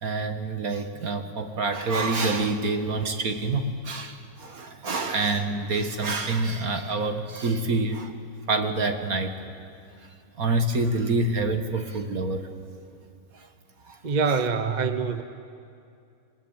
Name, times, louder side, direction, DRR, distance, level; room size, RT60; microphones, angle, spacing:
voice 1, 0.0-8.1 8.5-9.3 10.4-12.4 13.3-13.5 13.9-14.0 14.3-14.4, right 3 dB, 55° right, 6 dB, 2.1 m, -27 dB
voice 2, 14.0-15.2, right 5 dB, 35° right, 9 dB, 0.9 m, -25 dB
26.5 x 21.0 x 8.9 m, 2.4 s
omnidirectional pair, 1.9 m